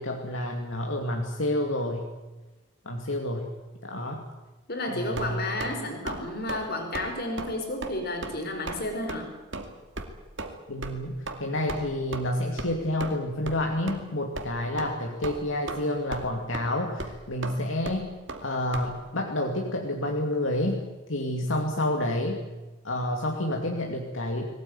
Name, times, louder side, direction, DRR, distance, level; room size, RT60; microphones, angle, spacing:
voice 1, 0.0-2.1 2.9-3.5 3.8-4.2 4.9-5.5 10.7-18.1 18.4-20.8 21.1-22.5 22.8-24.5, left 1 dB, 70° left, 1 dB, 2.4 m, -29 dB
voice 2, 4.7-9.3, left 1 dB, 50° left, 3 dB, 5.0 m, -32 dB
sound 1, 5.1-5.7 6.1-6.2 6.5-6.7 6.9-7.1 7.4-7.5 7.8-8.0 8.2-8.4 8.7-8.8 9.1-9.2 9.5-9.7 10.0-10.1 10.4-10.5 10.8-10.9 11.3-11.4 11.7-11.8 12.1-12.2 12.6-12.7 13.0-13.2 13.5-13.6 13.9-14.0 14.4-14.5 14.8-14.9 15.2-15.8 16.1-16.3 16.5-16.6 17.0-17.1 17.4-17.5 17.8-18.0 18.3-18.4 18.7-18.9, right 2 dB, 60° right, 2.5 m, -35 dB
21.5 x 18.0 x 9.5 m, 1.2 s
head